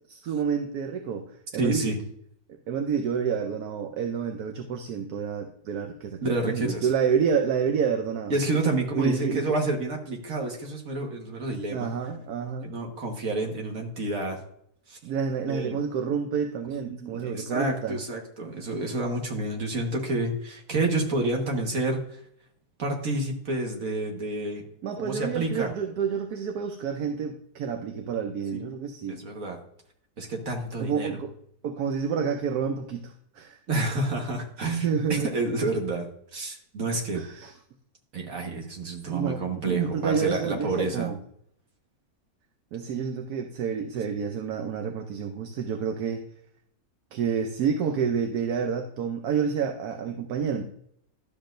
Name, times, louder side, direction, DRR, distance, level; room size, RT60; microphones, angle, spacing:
voice 1, 0.1-2.0 2.7-8.4 8.9-9.5 11.7-12.7 15.0-18.0 24.8-29.2 30.8-31.3 31.6-33.6 34.8-35.3 37.1-37.5 39.1-41.2 42.7-46.2 47.1-50.7, right 6 dB, 75° right, 4 dB, 1.2 m, -29 dB
voice 2, 1.6-2.0 6.2-6.9 8.3-11.9 12.6-14.4 14.9-15.0 15.5-15.8 16.9-22.2 22.8-24.6 25.0-25.7 28.5-28.6 29.1-29.6 30.2-31.1 33.7-37.2 38.1-41.1, right 2 dB, 60° right, 1 dB, 1.8 m, -29 dB
12.0 x 6.7 x 2.5 m, 0.68 s
omnidirectional pair, 1.6 m